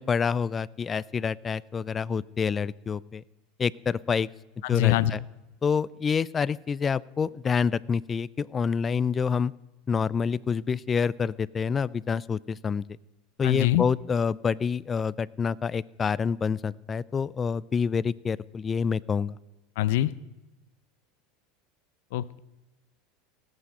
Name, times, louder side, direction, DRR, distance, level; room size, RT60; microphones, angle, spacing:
voice 1, 0.0-3.2 3.6-4.3 4.7-5.2 5.6-9.5 9.9-12.8 13.4-19.4, left 6 dB, 25° left, 22 dB, 0.3 m, -27 dB
voice 2, 4.6-5.1 13.4-13.8 19.8-20.1 22.1-22.4, left 15 dB, 75° left, 18 dB, 0.6 m, -23 dB
17.5 x 8.3 x 4.9 m, 1.1 s
supercardioid pair, 120°, 0 cm